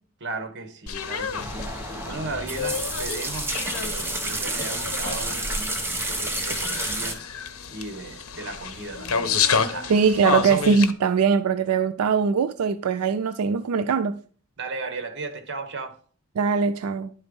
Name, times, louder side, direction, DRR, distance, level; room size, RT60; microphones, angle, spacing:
voice 1, 0.2-1.7 2.0-7.2 7.7-9.9 14.6-16.0, right 3 dB, 55° right, 1.2 m, -36 dB
sound 1, 0.9-10.9, left 6 dB, 75° left, 0.8 m, -30 dB
sound 2, 1.4-7.1, right 1 dB, 10° right, 1.1 m, -30 dB
voice 2, 9.9-14.2 16.4-17.1, right 5 dB, 90° right, 0.4 m, -21 dB
11.0 x 3.9 x 5.3 m
head